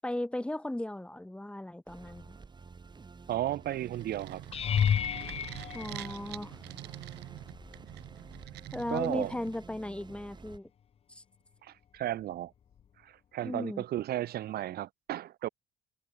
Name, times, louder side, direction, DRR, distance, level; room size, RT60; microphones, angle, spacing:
voice 1, 0.0-2.4 5.7-6.6 8.7-10.7 11.1-11.2 13.4-13.8, left 1 dB, 5° left, 6.6 m, -36 dB
sound 1, 1.9-10.6, right 4 dB, 25° right, 6.4 m, -51 dB
voice 2, 3.3-4.4 8.9-9.3 11.6-12.5 13.0-15.5, right 13 dB, 65° right, 4.3 m, -34 dB
sound 2, 3.5-9.8, right 18 dB, 85° right, 3.5 m, -46 dB
sound 3, 4.5-6.8 7.5-7.9 8.3-8.4 12.8-12.9, left 8 dB, 35° left, 0.6 m, -31 dB
cardioid pair, 110°, 17 cm